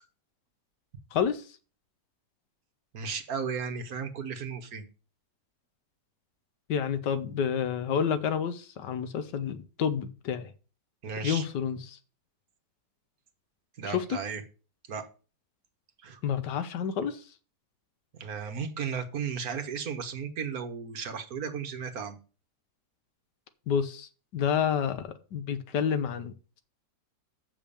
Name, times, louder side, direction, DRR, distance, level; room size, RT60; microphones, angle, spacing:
voice 1, 1.1-1.4 6.7-10.5 11.2-12.0 13.8-14.0 16.2-17.2 23.7-26.3, left 7 dB, 80° left, 1.6 m, -29 dB
voice 2, 2.9-4.8 11.0-11.5 13.8-14.4 14.9-15.0 16.0-16.2 18.1-22.2, right 6 dB, 60° right, 1.7 m, -35 dB
7.1 x 5.9 x 7.0 m
omnidirectional pair, 1.9 m